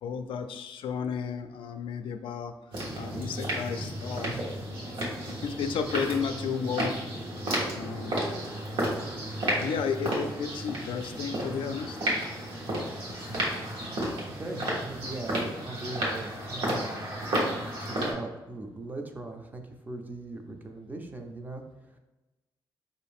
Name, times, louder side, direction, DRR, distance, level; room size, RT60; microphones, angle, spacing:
voice 1, 0.0-2.5 3.0-4.4 5.4-6.9 7.7-8.2 9.6-12.0, left 6 dB, 75° left, 8 dB, 0.3 m, -33 dB
sound 1, 2.7-18.1, right 1 dB, 85° right, 1.1 m, -32 dB
voice 2, 14.3-17.0 17.8-21.6, right 2 dB, 20° right, 4 dB, 0.4 m, -39 dB
4.6 x 2.5 x 3.5 m, 1.1 s
cardioid pair, 140°, 9 cm